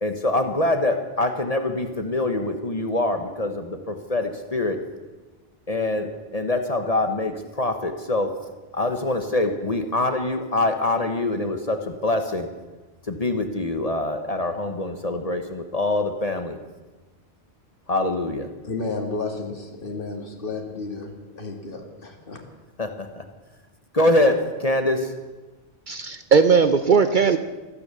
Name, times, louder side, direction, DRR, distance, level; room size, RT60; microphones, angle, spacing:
voice 1, 0.0-4.8 5.7-6.1 6.3-8.3 8.7-12.5 13.1-16.6 17.9-18.5 22.8-23.2 23.9-24.3 24.6-25.1, left 2 dB, 35° left, 6 dB, 1.2 m, -24 dB
voice 2, 18.6-22.4, left 3 dB, 55° left, 2 dB, 2.4 m, -32 dB
voice 3, 25.9-27.4, right 5 dB, 50° right, 10 dB, 0.8 m, -18 dB
15.0 x 14.0 x 6.9 m, 1.2 s
omnidirectional pair, 1.1 m